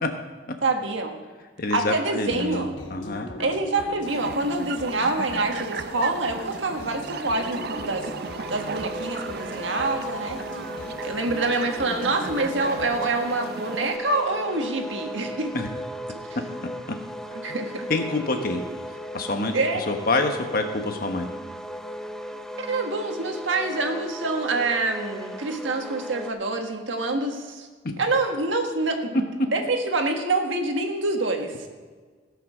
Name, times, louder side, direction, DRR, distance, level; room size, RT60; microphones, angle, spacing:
voice 1, 0.6-1.2 1.7-2.7 3.4-8.0 8.5-10.4 11.0-15.5 17.4-17.9 19.5-19.8 22.6-27.7 28.0-31.7, right 2 dB, 85° right, 4 dB, 1.5 m, -26 dB
voice 2, 1.6-2.6 2.9-3.3 15.5-15.7 16.9-17.0 17.9-18.6 19.1-19.5 19.9-21.3 27.8-27.9, left 2 dB, 50° left, 5 dB, 1.2 m, -26 dB
sound 1, 2.2-13.1, left 1 dB, 80° left, 1.1 m, -40 dB
sound 2, 4.0-14.0, right 5 dB, 55° right, 0.5 m, -36 dB
sound 3, 7.1-26.3, equal, 5° left, 0.5 m, -37 dB
17.0 x 5.8 x 6.3 m, 1.5 s
head